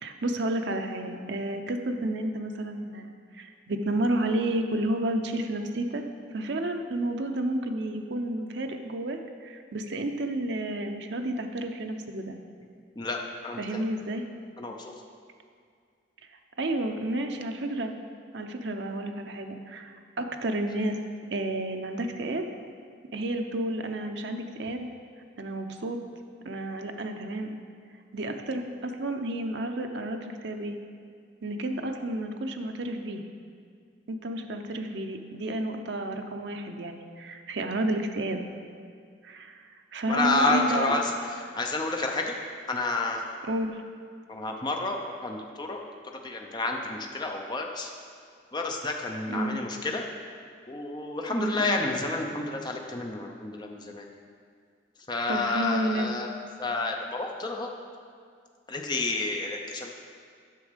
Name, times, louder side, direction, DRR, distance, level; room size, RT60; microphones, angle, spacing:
voice 1, 0.0-6.0 6.3-12.4 13.6-14.2 16.6-17.9 18.3-21.0 21.3-22.5 23.1-24.9 25.4-26.0 26.5-27.5 28.1-30.8 31.4-33.2 34.1-38.5 39.2-39.6 39.9-41.0 43.5-43.8 49.3-49.6 51.4-51.8 55.3-56.1, right 1 dB, 65° right, 5 dB, 0.6 m, -31 dB
voice 2, 13.0-13.8 14.6-14.9 40.1-42.3 42.7-43.3 44.3-45.8 46.2-47.9 48.5-50.0 50.7-54.1 55.1-56.3 56.6-57.7 58.7-59.9, left 2 dB, 25° left, 2 dB, 0.5 m, -30 dB
8.3 x 6.3 x 5.1 m, 2.2 s
head